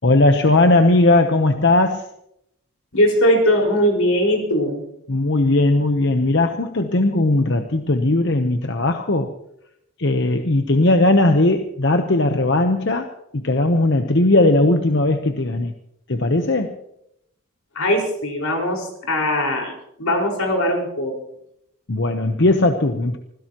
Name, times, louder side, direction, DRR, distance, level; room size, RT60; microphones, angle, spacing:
voice 1, 0.0-2.0 5.1-9.3 10.0-15.7 16.1-16.8 21.9-23.2, left 2 dB, 55° left, 6 dB, 0.9 m, -18 dB
voice 2, 2.9-4.8 17.7-19.7 20.0-21.1, equal, 85° left, 0 dB, 5.0 m, -20 dB
25.5 x 16.5 x 3.0 m, 0.77 s
head